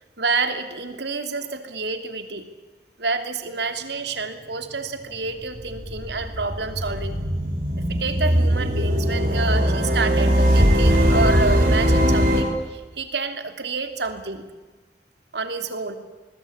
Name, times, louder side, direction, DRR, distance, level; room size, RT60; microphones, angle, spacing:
voice 1, 0.2-2.4 3.0-7.2 7.9-14.5 15.3-15.9, right 4 dB, 75° right, 7 dB, 2.9 m, -28 dB
sound 1, 5.2-12.4, equal, 50° right, 6.3 m, -20 dB
27.0 x 20.5 x 8.8 m, 1.3 s
head